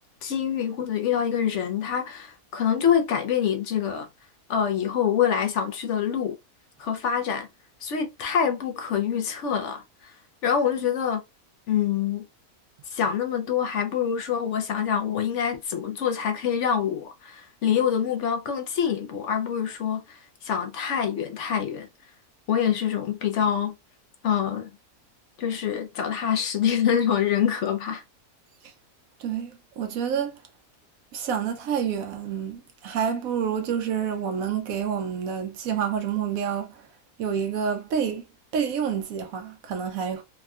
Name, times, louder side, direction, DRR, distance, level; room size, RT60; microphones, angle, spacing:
voice 1, 0.2-4.1 4.5-6.3 6.8-7.5 7.8-10.1 10.4-11.2 11.7-12.3 12.9-21.9 22.5-23.7 24.2-24.7 25.4-28.0, left 8 dB, 65° left, 0.8 m, -25 dB
voice 2, 29.2-30.3 31.1-36.9 37.2-38.2 38.5-40.2, right 7 dB, 70° right, 1.0 m, -28 dB
3.5 x 2.1 x 2.3 m
omnidirectional pair, 1.6 m